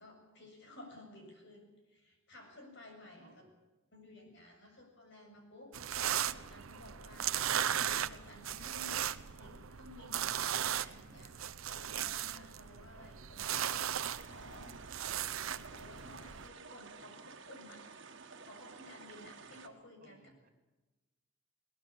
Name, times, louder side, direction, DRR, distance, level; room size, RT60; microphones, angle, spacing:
voice 1, 0.0-3.5 3.9-7.3 7.8-13.9 14.3-14.8 15.4-17.9 18.5-20.2, left 1 dB, 60° left, 3 dB, 7.2 m, -55 dB
voice 2, 3.1-3.5 19.4-19.7 20.0-20.5, right 2 dB, 40° right, 5 dB, 3.1 m, -62 dB
sound 1, 5.7-16.5, right 10 dB, 85° right, 0.8 m, -37 dB
sound 2, 14.1-19.7, right 5 dB, 60° right, 1.9 m, -52 dB
21.5 x 19.5 x 8.7 m, 1.1 s
head